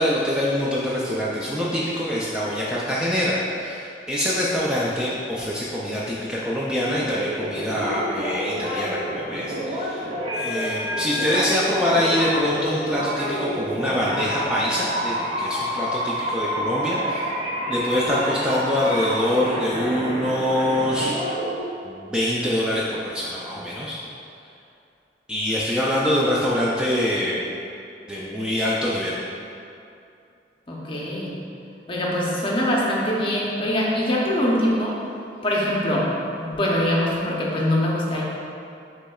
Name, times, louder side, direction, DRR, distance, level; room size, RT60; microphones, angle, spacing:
voice 1, 0.0-17.2 17.7-21.4 21.8-24.0 25.3-27.4 28.1-29.2, left 1 dB, 5° right, -7 dB, 0.3 m, -24 dB
sound 1, 6.8-21.6, equal, 35° right, 0.7 m, -28 dB
voice 2, 30.7-31.3 31.9-35.0 35.4-36.1 36.4-38.2, left 1 dB, 30° left, -4 dB, 0.6 m, -23 dB
6.4 x 3.1 x 2.3 m, 2.6 s
head